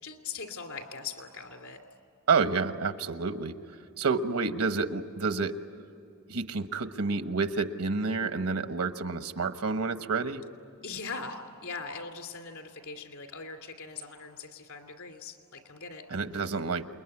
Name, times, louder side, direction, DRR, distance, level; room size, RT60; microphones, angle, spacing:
voice 1, 0.0-1.8 10.8-16.1, left 5 dB, 75° left, 5 dB, 2.8 m, -41 dB
voice 2, 2.3-3.6 4.0-5.6 6.3-10.4 16.1-16.9, right 4 dB, 80° right, 9 dB, 1.2 m, -29 dB
28.5 x 21.5 x 9.8 m, 2.7 s
head